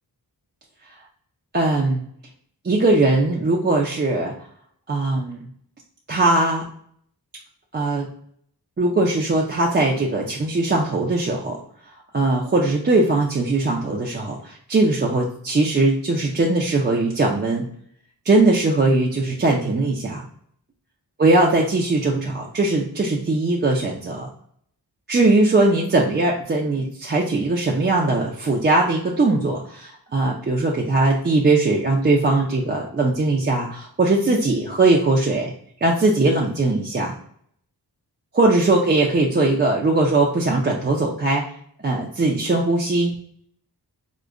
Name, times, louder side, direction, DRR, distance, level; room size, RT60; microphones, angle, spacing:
voice 1, 1.5-2.0 2.6-4.3 4.9-5.4 6.1-6.6 7.7-8.1 8.8-11.6 12.1-17.7 18.3-20.2 21.2-24.3 25.1-35.5 35.8-37.1 38.3-41.4 41.8-43.1, right 2 dB, 30° right, -2 dB, 0.4 m, -20 dB
4.8 x 2.1 x 2.4 m, 0.64 s
wide cardioid pair, 100°, 40 cm